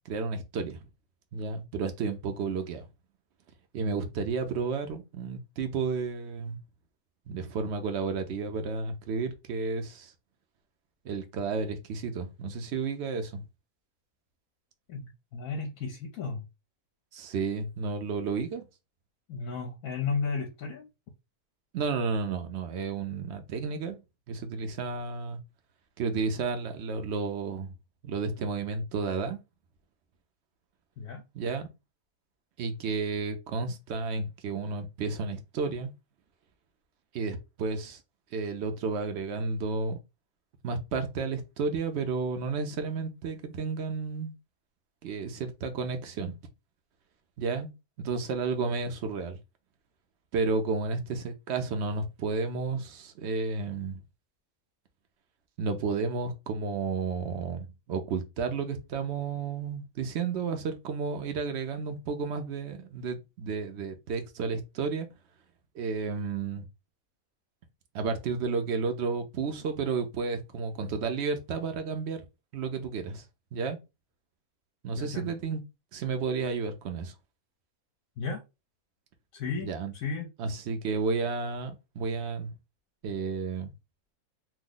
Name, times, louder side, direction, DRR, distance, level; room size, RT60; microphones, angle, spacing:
voice 1, 0.1-0.9 1.3-2.9 3.7-6.6 7.3-10.1 11.0-13.4 17.1-18.6 21.7-24.0 24.3-25.4 26.0-27.7 28.0-29.4 31.3-31.7 32.6-35.9 37.1-38.0 38.3-40.0 40.6-44.3 45.0-46.4 47.4-47.7 48.0-49.4 50.3-54.0 55.6-65.1 65.7-66.7 67.9-72.2 72.5-73.3 73.5-73.8 74.8-75.6 75.9-77.1 79.6-79.9 80.4-82.5 83.0-83.7, right 4 dB, 60° right, 0.7 m, -32 dB
voice 2, 14.9-16.5 19.3-20.9 31.0-31.3 74.9-75.3 78.2-78.4 79.3-80.3, left 4 dB, 70° left, 1.0 m, -34 dB
3.0 x 2.1 x 3.7 m
omnidirectional pair, 1.6 m